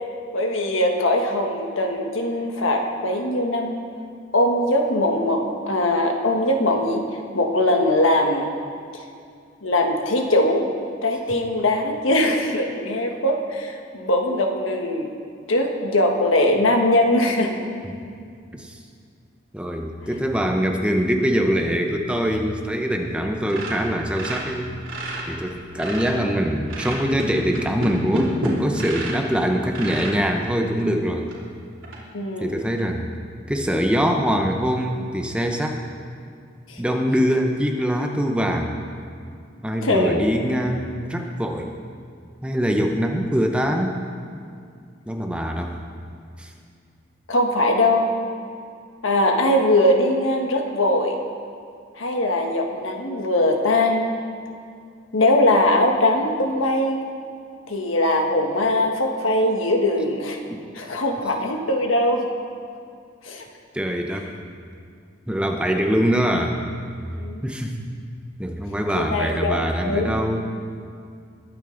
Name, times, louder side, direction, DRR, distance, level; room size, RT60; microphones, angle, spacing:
voice 1, 0.3-3.8 4.3-7.0 7.3-8.5 9.6-10.7 11.0-15.1 15.5-17.5 32.1-32.6 36.7-36.8 39.8-40.3 47.3-48.1 49.0-51.2 52.0-54.2 55.1-57.0 57.7-60.4 60.7-62.3 63.2-63.4 67.2-67.5 68.9-70.2, left 1 dB, 90° left, 2 dB, 1.5 m, -21 dB
voice 2, 19.5-24.8 25.3-31.3 32.4-33.0 33.5-35.8 36.8-38.7 39.6-41.8 42.4-44.0 45.1-45.8 46.4-46.5 60.5-60.6 63.7-64.2 65.3-66.6 67.4-67.8 68.4-70.4, equal, 5° right, 2 dB, 0.8 m, -23 dB
sound 1, 23.5-25.3 25.6-26.3 26.7-29.2 29.7-30.2 30.8-30.9 31.3-31.4 31.8-32.0, right 1 dB, 85° right, 3.1 m, -29 dB
21.0 x 9.0 x 3.9 m, 2.3 s
head